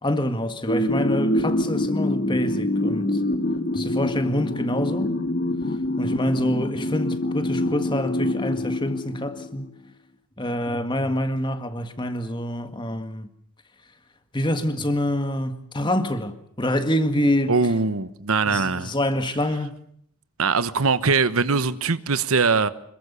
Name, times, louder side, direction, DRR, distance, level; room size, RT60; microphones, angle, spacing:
voice 1, 0.0-3.2 3.7-5.2 6.0-9.7 10.4-13.3 14.3-17.6 18.5-19.8, left 1 dB, 20° left, 1.8 m, -26 dB
sound 1, 0.7-9.7, left 1 dB, 45° left, 2.2 m, -25 dB
voice 2, 17.5-18.9 20.4-22.7, right 4 dB, 70° right, 1.1 m, -21 dB
26.0 x 22.0 x 6.9 m
head